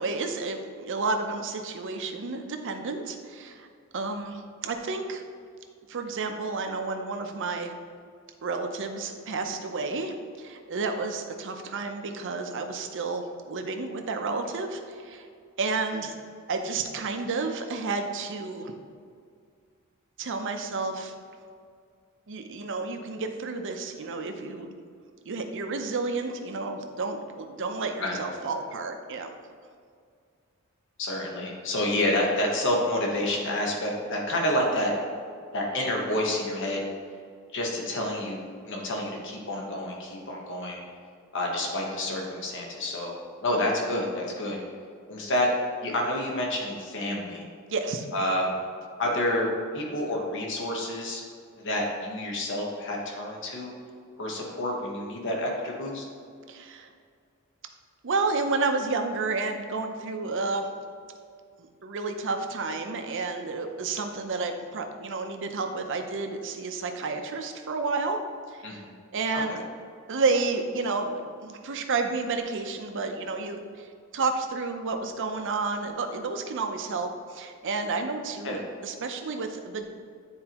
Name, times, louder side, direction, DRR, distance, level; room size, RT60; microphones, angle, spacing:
voice 1, 0.0-3.7 3.9-5.2 5.9-7.7 8.4-15.2 15.6-16.1 16.5-18.7 20.2-21.1 22.3-24.7 25.2-29.3 47.7-48.1 56.5-56.9 58.0-60.7 61.8-68.2 68.5-68.6 69.1-69.6 70.1-73.9 74.1-79.9, right 3 dB, 60° right, 5 dB, 0.7 m, -31 dB
voice 2, 31.0-34.9 35.5-36.8 37.5-40.8 41.3-43.2 43.4-44.6 45.1-45.5 45.8-47.4 48.1-48.5 49.0-49.5 49.7-51.2 51.6-53.7 54.2-56.0 68.6-68.9 69.3-69.6 78.4-78.6, left 1 dB, 60° left, -1 dB, 1.2 m, -29 dB
9.5 x 4.5 x 3.0 m, 2.2 s
head